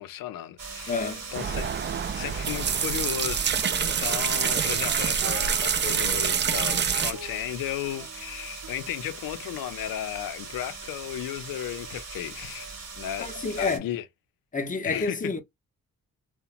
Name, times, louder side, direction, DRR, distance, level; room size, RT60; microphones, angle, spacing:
voice 1, 0.0-1.7 2.1-13.3 13.5-14.0 14.8-15.2, left 12 dB, 80° left, 0.5 m, -35 dB
sound 1, 0.6-13.8, right 4 dB, 50° right, 1.1 m, -40 dB
voice 2, 0.9-1.2 13.2-13.9 14.5-15.4, left 4 dB, 25° left, 0.6 m, -29 dB
sound 2, 1.0-2.4 2.8-3.0 3.6-3.7 3.9-8.7, right 6 dB, 70° right, 0.7 m, -44 dB
sound 3, 1.3-7.1, right 7 dB, 35° right, 0.4 m, -26 dB
2.9 x 2.1 x 2.4 m
cardioid pair, 60°, 34 cm